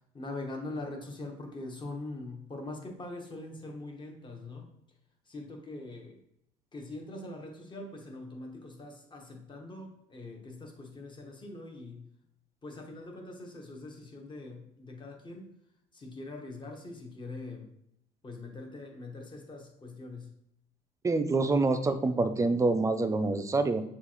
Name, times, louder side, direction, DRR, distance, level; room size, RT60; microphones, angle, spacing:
voice 1, 0.0-4.7 5.3-6.2 6.7-12.1 12.6-15.5 15.9-17.7 18.2-20.3, left 2 dB, 30° left, 1 dB, 1.1 m, -42 dB
voice 2, 21.0-23.8, right 3 dB, 20° right, 10 dB, 0.4 m, -26 dB
6.8 x 2.4 x 3.0 m, 0.76 s
cardioid pair, 110°, 17 cm